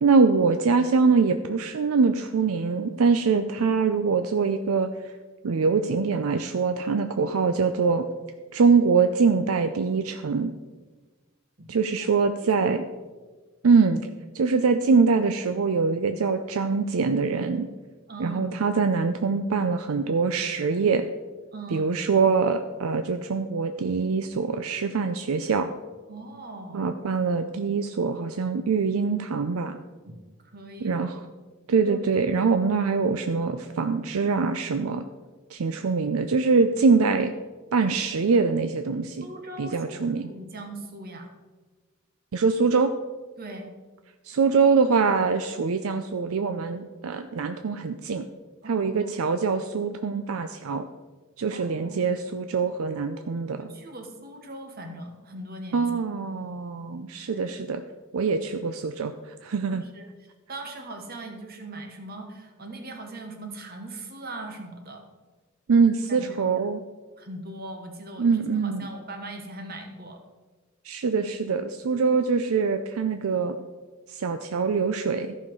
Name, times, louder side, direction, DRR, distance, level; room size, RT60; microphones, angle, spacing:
voice 1, 0.0-4.9 5.4-8.0 8.5-10.5 11.7-12.8 13.6-14.1 14.3-17.7 18.2-21.1 21.7-25.7 26.7-29.8 30.8-31.2 31.7-35.1 35.5-37.3 37.7-39.3 39.6-40.3 42.3-42.9 44.3-48.3 48.7-50.9 51.4-53.7 55.7-57.8 58.1-59.1 59.4-59.8 65.7-66.8 68.2-68.9 70.8-73.6 74.1-75.4, right 4 dB, 75° right, 8 dB, 0.5 m, -23 dB
voice 2, 18.1-18.6 21.5-21.9 26.1-26.9 30.1-31.3 39.2-41.3 43.4-43.7 48.6-49.1 51.5-52.0 53.5-55.9 57.3-57.4 59.6-60.1 60.5-65.0 66.1-66.6 67.2-70.2, right 2 dB, 45° right, 4 dB, 1.3 m, -40 dB
14.0 x 5.8 x 4.6 m, 1.3 s
head